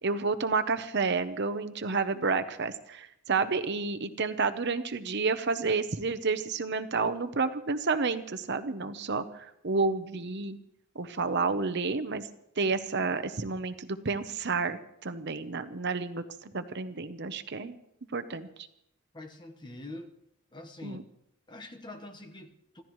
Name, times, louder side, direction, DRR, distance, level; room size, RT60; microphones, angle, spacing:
voice 1, 0.0-10.6 10.9-12.3 12.6-17.8 18.1-18.5 20.8-21.0, right 4 dB, 50° right, 10 dB, 0.8 m, -30 dB
voice 2, 19.1-20.1 20.5-21.0 21.5-22.8, left 2 dB, 20° left, 6 dB, 1.2 m, -45 dB
26.0 x 15.0 x 3.2 m, 0.76 s
head